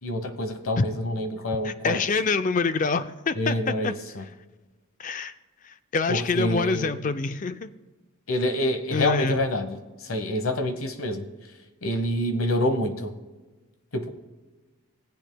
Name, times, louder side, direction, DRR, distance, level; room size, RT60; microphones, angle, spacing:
voice 1, 0.0-2.0 3.3-4.2 6.1-6.9 8.3-11.3 11.8-13.1 13.9-14.1, left 1 dB, 75° left, 7 dB, 1.1 m, -27 dB
voice 2, 1.6-3.9 5.0-5.3 5.9-7.7 8.9-9.4, left 4 dB, 35° left, 12 dB, 0.4 m, -26 dB
19.5 x 8.0 x 2.3 m, 1.2 s
head